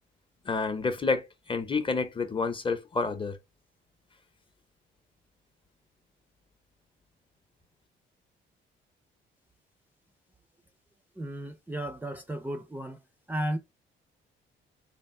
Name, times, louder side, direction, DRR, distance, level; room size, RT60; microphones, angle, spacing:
voice 1, 0.5-3.4, left 4 dB, 25° left, 0.8 m, -29 dB
voice 2, 11.2-13.0 13.3-13.6, right 1 dB, 10° right, 0.5 m, -34 dB
3.4 x 2.5 x 4.3 m
cardioid pair, 90°, 20 cm